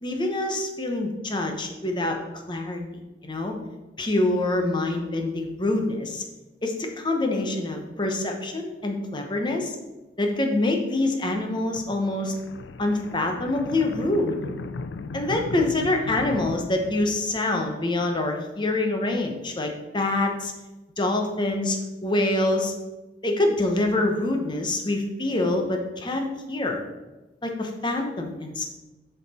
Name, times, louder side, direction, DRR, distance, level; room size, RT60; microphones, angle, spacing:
voice 1, 0.0-2.2 2.5-2.8 3.2-3.5 4.0-6.2 6.6-9.8 10.2-12.3 12.8-14.4 15.1-20.5 21.0-21.8 22.0-22.7 23.2-26.8 27.4-28.6, left 2 dB, 25° left, 3 dB, 1.0 m, -25 dB
sound 1, 11.7-17.6, left 3 dB, 90° left, 0.4 m, -37 dB
7.3 x 5.8 x 4.2 m, 1.1 s
head